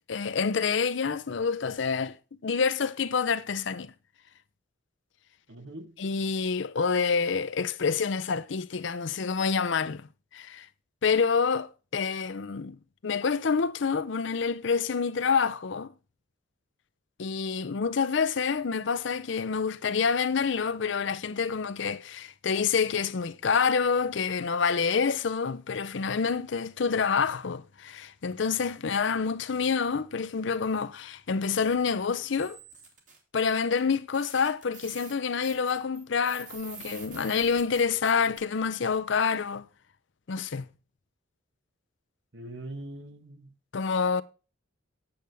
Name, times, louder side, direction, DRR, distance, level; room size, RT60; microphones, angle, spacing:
voice 1, 0.1-2.2 2.4-3.9 6.0-10.1 10.3-10.7 11.0-12.8 13.0-15.9 17.2-32.6 33.3-39.7 40.3-40.7 43.7-44.2, left 5 dB, 65° left, 0.5 m, -27 dB
voice 2, 5.5-6.0 42.3-43.6, right 1 dB, 65° right, 1.3 m, -42 dB
sound 1, 32.4-33.2 33.8-33.9 34.1-38.4, right 5 dB, 40° right, 2.2 m, -47 dB
8.6 x 7.7 x 3.4 m
head